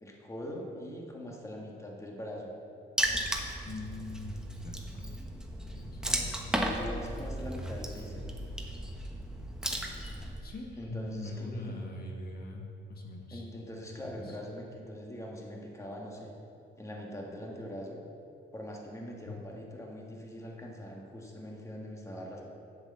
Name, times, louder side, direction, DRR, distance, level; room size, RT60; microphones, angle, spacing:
voice 1, 0.0-2.5 6.1-8.2 10.8-11.8 13.3-16.3 16.8-18.0 18.5-22.4, equal, 15° left, -1 dB, 1.5 m, -42 dB
Water / Splash splatter, 3.0-10.4, right 1 dB, 5° right, 1.1 m, -35 dB
voice 2, 3.6-5.2 5.7-6.4 10.4-13.5 14.0-14.4 19.3-19.4, left 2 dB, 50° left, 0 dB, 1.5 m, -42 dB
7.8 x 6.4 x 7.7 m, 2.6 s
cardioid pair, 90°, 20 cm